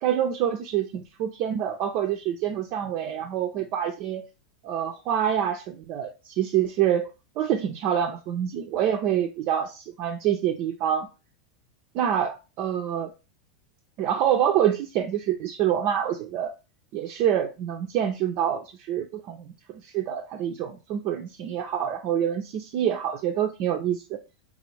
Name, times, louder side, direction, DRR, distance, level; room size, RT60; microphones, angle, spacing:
voice 1, 0.0-4.3 4.6-7.1 7.4-11.1 12.0-12.3 12.6-13.1 14.0-16.5 16.9-24.2, right 10 dB, 50° right, 0.4 m, -26 dB
3.5 x 2.5 x 3.2 m
hypercardioid pair, 100°, 3 cm